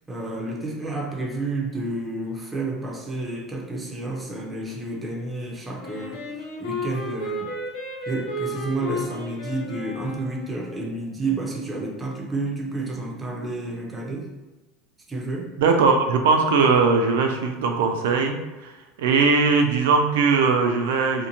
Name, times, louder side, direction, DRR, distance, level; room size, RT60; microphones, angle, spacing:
voice 1, 0.1-6.2 6.6-7.5 8.1-14.3 15.1-15.5, right 2 dB, 10° right, -2 dB, 0.5 m, -30 dB
Wind instrument woodwind instrument, 5.8-10.9, left 1 dB, 80° left, 0.9 m, -33 dB
voice 2, 15.6-18.4 18.6-18.7 19.0-21.3, right 4 dB, 85° right, 4 dB, 0.4 m, -20 dB
2.6 x 2.1 x 2.8 m, 1.1 s
supercardioid pair, 120°, 0 cm